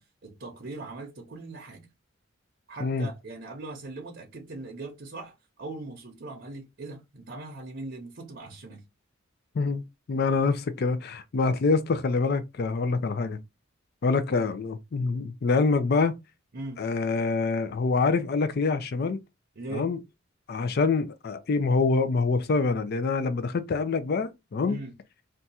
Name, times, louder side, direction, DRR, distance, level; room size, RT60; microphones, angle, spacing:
voice 1, 0.0-1.9 2.7-8.8 16.5-16.9 19.6-19.9 24.7-24.9, right 2 dB, 50° right, 0.7 m, -40 dB
voice 2, 9.5-13.4 14.0-16.1 16.8-19.2 19.7-20.0 20.5-24.8, left 4 dB, 50° left, 0.4 m, -25 dB
2.6 x 2.3 x 4.1 m
head